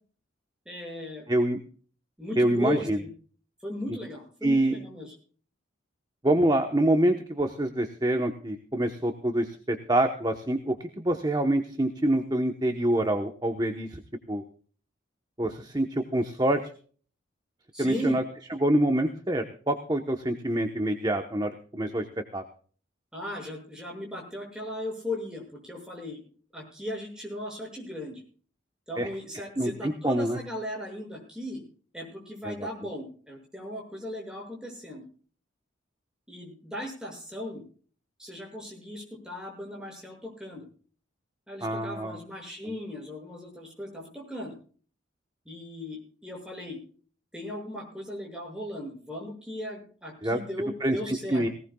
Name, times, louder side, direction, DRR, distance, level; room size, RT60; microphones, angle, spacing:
voice 1, 0.6-1.3 2.2-3.1 3.6-5.1 17.7-18.2 23.1-26.2 26.5-28.2 28.9-31.6 31.9-35.0 36.3-37.6 38.2-40.7 41.5-44.5 45.4-46.8 47.3-51.4, left 1 dB, 5° right, -1 dB, 6.5 m, -37 dB
voice 2, 1.3-1.6 2.4-3.0 4.4-4.8 6.2-14.0 14.3-14.4 15.4-16.6 17.8-18.2 18.5-22.4 29.0-29.1 29.6-30.4 32.4-32.7 41.6-42.2 50.2-50.4 50.8-51.5, right 1 dB, 20° right, 5 dB, 1.0 m, -26 dB
19.5 x 17.5 x 2.3 m, 0.43 s
head